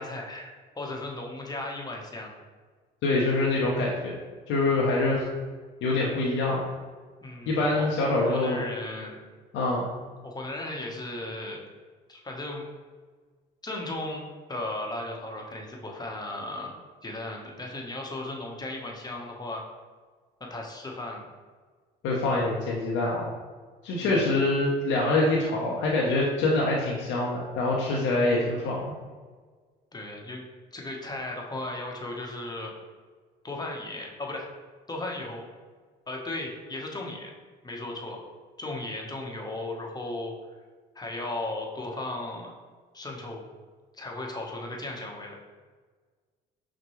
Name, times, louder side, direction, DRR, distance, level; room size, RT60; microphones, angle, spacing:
voice 1, 0.0-2.3 7.2-7.9 8.2-9.2 10.2-11.6 12.1-12.6 13.6-14.2 14.5-16.7 17.0-19.6 20.4-21.2 24.0-24.2 29.9-30.4 30.7-32.7 33.4-34.5 34.9-35.4 36.1-37.3 37.6-38.2 38.6-40.3 40.9-42.5 42.9-43.4 43.9-45.4, left 2 dB, 20° left, 0 dB, 1.0 m, -36 dB
voice 2, 3.0-4.1 4.5-5.3 5.8-6.7 7.5-8.6 9.5-9.9 22.0-23.3 23.8-28.9, left 2 dB, 70° left, -4 dB, 0.8 m, -25 dB
5.9 x 2.2 x 3.1 m, 1.5 s
hypercardioid pair, 60°, 20 cm